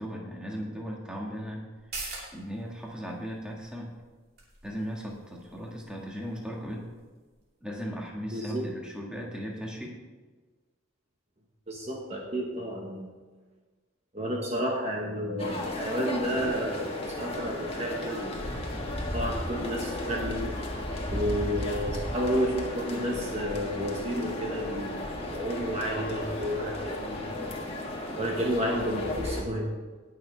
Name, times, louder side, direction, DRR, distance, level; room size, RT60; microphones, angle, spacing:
voice 1, 0.0-1.7 2.3-3.9 4.6-6.9 7.6-10.0, equal, 5° right, -2 dB, 1.6 m, -37 dB
sound 1, 1.7-8.9 9.2-9.3, right 3 dB, 50° right, 2.8 m, -47 dB
voice 2, 8.3-8.7 11.7-13.2 14.1-18.4 19.1-20.5 21.1-25.0 25.2-27.6 28.2-29.7, equal, 30° right, -1 dB, 1.2 m, -31 dB
sound 2, 15.4-29.4, left 1 dB, 25° left, 1.4 m, -34 dB
18.5 x 6.5 x 3.4 m, 1.3 s
head